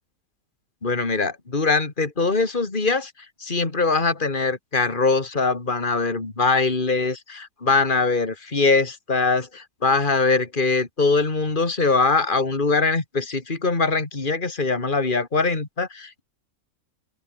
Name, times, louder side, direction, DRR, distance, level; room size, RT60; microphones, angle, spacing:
voice 1, 0.8-3.1 3.4-16.2, left 3 dB, 35° left, 2.9 m, -22 dB
open air
omnidirectional pair, 1.6 m